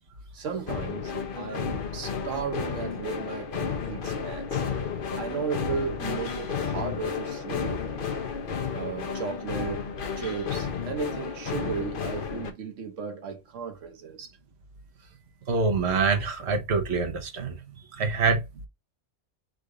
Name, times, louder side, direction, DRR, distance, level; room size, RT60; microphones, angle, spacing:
voice 1, 0.3-4.6 5.1-7.9 8.7-14.3, right 6 dB, 85° right, 1.3 m, -35 dB
sound 1, 0.7-12.5, left 6 dB, 50° left, 0.9 m, -32 dB
voice 2, 15.5-17.6 17.9-18.7, right 4 dB, 60° right, 1.2 m, -25 dB
3.8 x 2.6 x 4.6 m
omnidirectional pair, 1.3 m